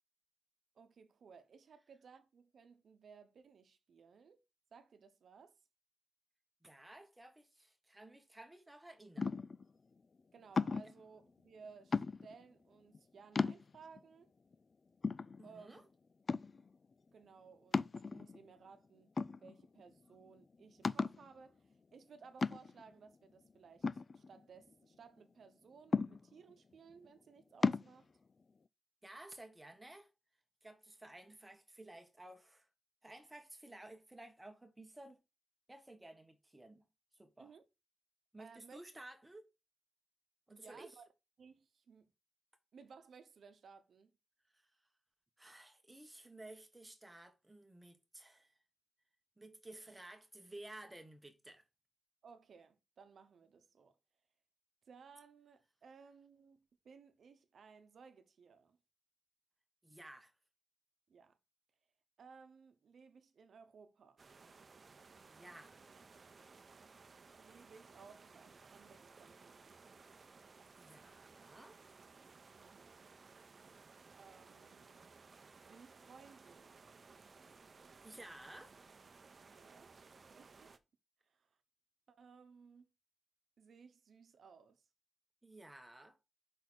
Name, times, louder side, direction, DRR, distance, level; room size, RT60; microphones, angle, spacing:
voice 1, 0.7-4.4 4.7-5.5 10.3-14.3 15.4-15.8 17.1-19.1 19.4-28.1 37.4-37.6 38.4-38.8 40.5-41.1 41.4-42.1 42.7-44.1 52.2-54.0 54.9-58.8 61.1-61.4 62.2-64.2 67.4-69.7 72.6-72.9 74.2-75.1 75.7-76.8 79.5-79.9 80.3-80.8 81.3-81.6 82.1-82.9 83.6-84.9, right 5 dB, 70° right, 0.9 m, -59 dB
voice 2, 6.6-9.4 15.4-15.8 29.0-30.1 30.6-32.7 33.0-35.2 35.7-36.9 37.1-37.5 38.3-39.5 40.5-41.0 44.5-44.6 45.4-48.5 49.4-51.6 59.8-60.3 65.3-65.8 70.8-71.8 78.0-78.9 85.4-86.2, right 1 dB, 15° right, 1.5 m, -54 dB
sound 1, 9.2-9.6 10.6-11.0 11.9-12.4 12.9-13.0 13.4-14.0 14.5-14.6 15.0-15.8 16.3-16.7 17.7-18.5 19.2-19.8 20.1-20.2 20.8-21.3 22.4-22.9 23.8-24.7 25.9-26.5 27.6-27.9, left 4 dB, 40° left, 0.3 m, -35 dB
sound 2, 64.2-80.8, right 4 dB, 45° right, 0.7 m, -60 dB
5.4 x 4.2 x 6.2 m
wide cardioid pair, 100°, 0 cm